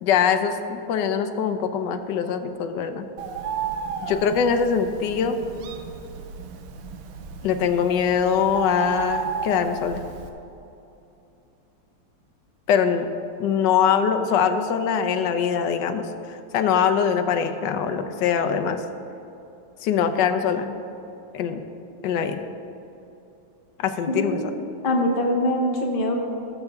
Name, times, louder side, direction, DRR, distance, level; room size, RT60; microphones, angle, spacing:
voice 1, 0.0-3.1 4.0-5.4 7.4-10.0 12.7-13.1 13.4-18.8 19.8-20.8 21.3-21.6 22.0-22.4 23.8-24.4, left 7 dB, 65° left, 7 dB, 1.2 m, -23 dB
Bird, 3.2-10.3, right 6 dB, 80° right, 1.7 m, -33 dB
voice 2, 24.1-24.5 24.8-26.2, left 1 dB, 35° left, 0 dB, 1.0 m, -23 dB
19.5 x 6.9 x 3.5 m, 2.8 s
omnidirectional pair, 2.4 m